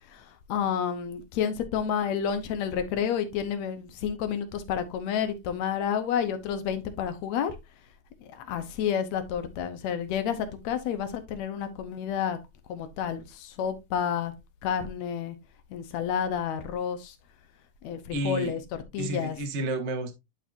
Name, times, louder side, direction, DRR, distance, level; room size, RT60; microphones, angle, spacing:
voice 1, 0.1-7.5 8.3-12.4 12.7-14.3 14.6-15.4 15.7-17.2 17.8-18.6 18.9-19.4, left 8 dB, 75° left, 2.1 m, -30 dB
voice 2, 18.1-18.6 19.0-20.1, right 1 dB, 80° right, 0.6 m, -31 dB
10.5 x 4.5 x 2.6 m
omnidirectional pair, 3.3 m